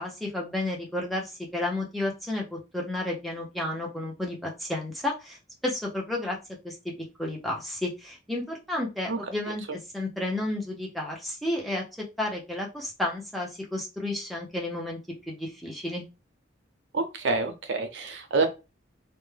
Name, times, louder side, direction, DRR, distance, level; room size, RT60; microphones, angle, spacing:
voice 1, 0.0-5.4 5.6-6.4 6.6-6.9 7.2-9.6 9.9-11.8 12.2-15.0 15.3-16.0, left 1 dB, ahead, -2 dB, 0.5 m, -31 dB
voice 2, 16.9-18.4, right 3 dB, 70° right, 6 dB, 0.5 m, -27 dB
2.2 x 2.1 x 3.2 m, 0.27 s
head